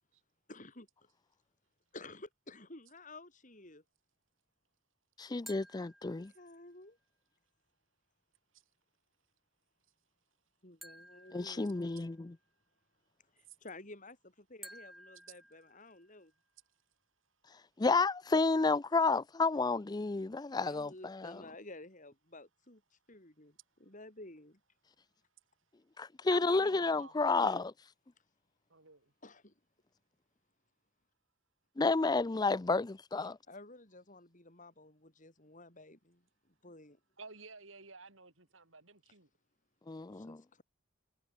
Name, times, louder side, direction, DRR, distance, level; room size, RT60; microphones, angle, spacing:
voice 1, 0.5-0.9 1.9-3.8 6.1-7.0 10.6-11.8 13.3-16.3 20.6-24.6 29.2-29.5 33.5-37.0 40.1-40.6, left 2 dB, 40° left, 6.4 m, -53 dB
voice 2, 5.2-6.3 11.3-12.4 17.8-21.4 26.0-27.7 31.8-33.4 39.9-40.4, left 3 dB, 20° left, 0.4 m, -31 dB
sound 1, 5.5-6.8 10.8-12.3 14.6-16.3, equal, ahead, 2.5 m, -55 dB
voice 3, 26.3-27.2 28.7-29.1 37.2-39.3, right 4 dB, 70° right, 5.1 m, -52 dB
head